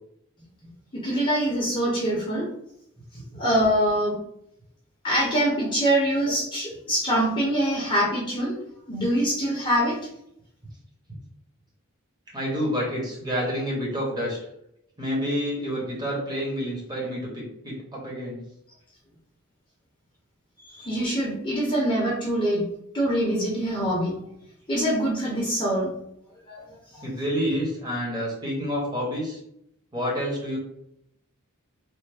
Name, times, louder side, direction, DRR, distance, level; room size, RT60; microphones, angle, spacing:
voice 1, 0.9-2.5 3.3-4.2 5.0-8.6 8.9-10.0 20.6-22.7 22.9-24.2 24.7-25.9 26.5-26.6 26.9-27.0, right 1 dB, 20° left, -5 dB, 0.7 m, -24 dB
voice 2, 12.3-14.4 15.0-18.4 27.0-29.4 29.9-30.6, equal, 20° right, -4 dB, 1.0 m, -28 dB
3.3 x 2.0 x 3.3 m, 0.76 s
head